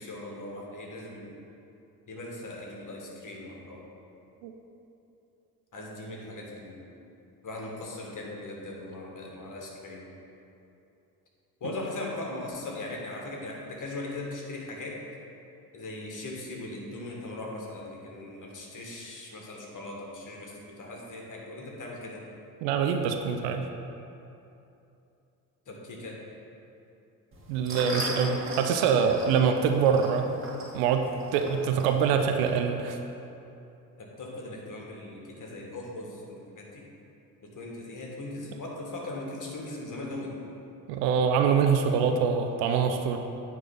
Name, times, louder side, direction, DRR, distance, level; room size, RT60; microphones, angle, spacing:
voice 1, 0.0-1.4 2.1-3.8 5.7-6.8 7.4-10.1 11.6-15.0 15.7-22.2 25.7-26.2 34.0-36.9 37.4-40.4, left 2 dB, 40° left, -2 dB, 1.9 m, -39 dB
voice 2, 22.6-23.7 27.5-30.3 30.7-33.0 40.9-43.2, right 6 dB, 70° right, 5 dB, 0.7 m, -24 dB
sound 1, 27.3-32.5, right 1 dB, 25° right, 2.0 m, -38 dB
9.3 x 3.6 x 6.8 m, 2.8 s
hypercardioid pair, 50°, 47 cm